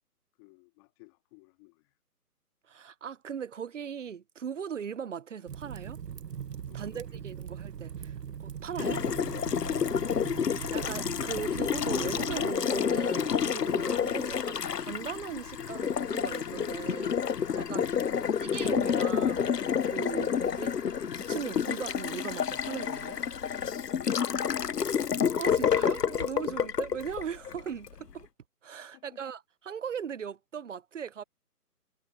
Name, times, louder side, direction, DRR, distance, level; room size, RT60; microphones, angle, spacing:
voice 1, 0.4-2.0 6.7-7.2 23.7-24.8 26.5-26.6 28.9-29.2, left 28 dB, 15° left, 2.0 m, -55 dB
voice 2, 2.7-6.0 6.7-9.0 10.5-17.2 17.5-17.9 18.4-19.5 19.8-20.7 21.1-23.2 25.1-28.3 28.6-31.2, right 7 dB, 50° right, 0.8 m, -39 dB
Fire, 5.5-12.5, right 8 dB, 90° right, 0.8 m, -41 dB
Water tap faucet, 8.8-27.9, left 7 dB, 85° left, 0.9 m, -29 dB
figure-of-eight pair, 155°, 47 cm